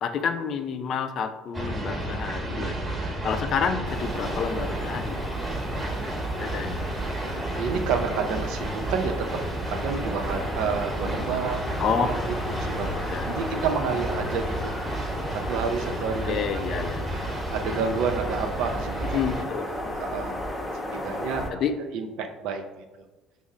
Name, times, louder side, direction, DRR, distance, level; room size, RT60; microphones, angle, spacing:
voice 1, 0.0-2.8 3.2-5.2 6.4-6.8 11.8-12.1 13.1-13.3 16.2-17.1 19.0-20.0 21.5-21.8, left 6 dB, 55° left, 8 dB, 0.4 m, -29 dB
sound 1, 1.5-19.4, right 1 dB, 25° right, 1.0 m, -32 dB
sound 2, 3.8-21.5, left 1 dB, 10° left, 0.8 m, -35 dB
voice 2, 7.6-9.3 9.7-12.2 12.5-14.7 15.3-16.7 17.5-19.5 20.0-20.4 20.9-21.4 21.9-22.8, right 5 dB, 75° right, 5 dB, 0.5 m, -30 dB
5.2 x 2.0 x 3.6 m, 1.1 s
supercardioid pair, 90°, 0 cm